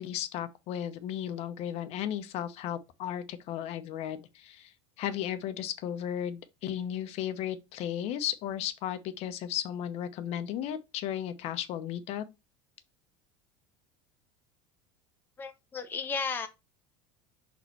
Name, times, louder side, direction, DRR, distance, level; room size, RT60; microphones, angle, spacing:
voice 1, 0.0-4.7 5.0-12.2, left 10 dB, 50° left, 0.9 m, -35 dB
voice 2, 15.4-16.5, left 5 dB, 15° left, 0.8 m, -34 dB
5.7 x 4.2 x 4.5 m
cardioid pair, 145°, 14 cm